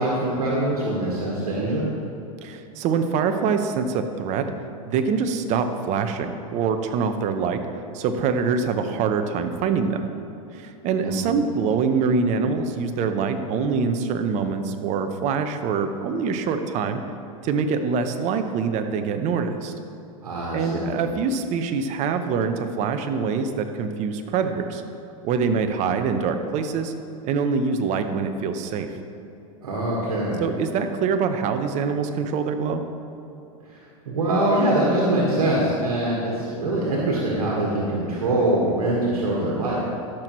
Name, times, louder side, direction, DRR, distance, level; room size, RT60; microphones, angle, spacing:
voice 1, 0.0-1.9 11.0-11.4 20.2-21.0 29.6-30.5 33.7-33.8 34.0-39.8, right 1 dB, 85° right, -4 dB, 1.5 m, -23 dB
voice 2, 2.4-4.5 4.9-10.1 10.5-17.0 17.4-19.7 20.5-24.8 25.2-26.9 27.2-28.9 30.4-32.8, right 5 dB, 40° right, 7 dB, 0.7 m, -24 dB
13.0 x 6.1 x 3.1 m, 2.7 s
hypercardioid pair, 110°, 19 cm